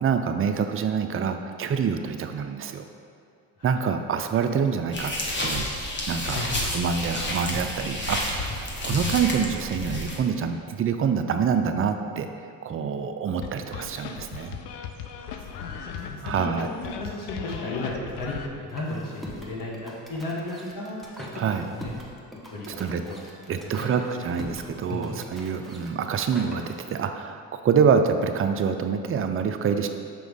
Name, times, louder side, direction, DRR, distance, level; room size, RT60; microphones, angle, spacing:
voice 1, 0.0-2.9 3.6-5.1 5.4-5.7 6.1-12.3 12.6-14.6 16.2-16.7 21.3-21.7 22.8-23.0 23.5-29.9, right 6 dB, 30° right, 7 dB, 0.5 m, -26 dB
sound 1, 4.9-10.2, left 1 dB, 25° left, 1.3 m, -30 dB
voice 2, 6.3-6.6 15.1-21.9 22.4-23.2 23.6-24.4 24.9-25.2, left 2 dB, 45° left, -4 dB, 1.5 m, -35 dB
sound 2, 13.4-18.5, left 7 dB, 65° left, 0.7 m, -37 dB
sound 3, 18.7-26.9, equal, ahead, 1.1 m, -42 dB
6.1 x 4.9 x 3.6 m, 2.3 s
hypercardioid pair, 60°, 45 cm